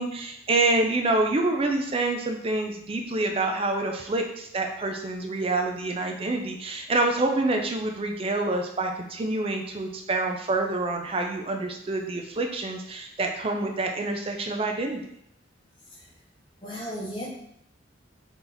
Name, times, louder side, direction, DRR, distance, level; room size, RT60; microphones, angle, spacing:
voice 1, 0.0-15.0, right 2 dB, 30° right, 3 dB, 0.4 m, -27 dB
voice 2, 16.6-17.3, equal, 25° left, -5 dB, 1.2 m, -35 dB
3.9 x 2.9 x 3.9 m, 0.74 s
head